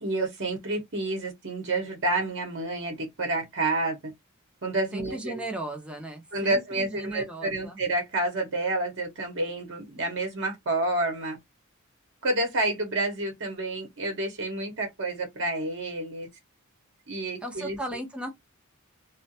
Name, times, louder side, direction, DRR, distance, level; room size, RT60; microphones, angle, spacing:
voice 1, 0.0-4.0 4.6-5.5 6.3-11.4 12.2-16.3 17.1-17.8, right 2 dB, 55° right, 0.9 m, -29 dB
voice 2, 4.9-7.8 17.4-18.3, right 1 dB, 5° right, 0.6 m, -36 dB
2.4 x 2.1 x 2.7 m
head